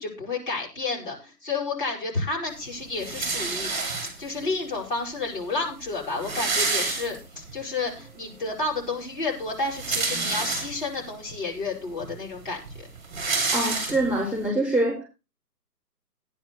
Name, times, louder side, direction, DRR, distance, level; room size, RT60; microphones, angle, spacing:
voice 1, 0.0-3.7 4.2-12.9, left 3 dB, 30° left, -3 dB, 5.5 m, -31 dB
sound 1, 3.0-4.4 5.3-5.4 5.6-5.7 6.0-7.5 8.0-8.1 9.5-11.0 11.6-11.7 12.0-14.4, right 4 dB, 25° right, 4.2 m, -28 dB
voice 2, 13.5-15.0, right 1 dB, ahead, -15 dB, 3.5 m, -24 dB
15.5 x 10.0 x 4.1 m, 0.30 s
figure-of-eight pair, 165°, 49 cm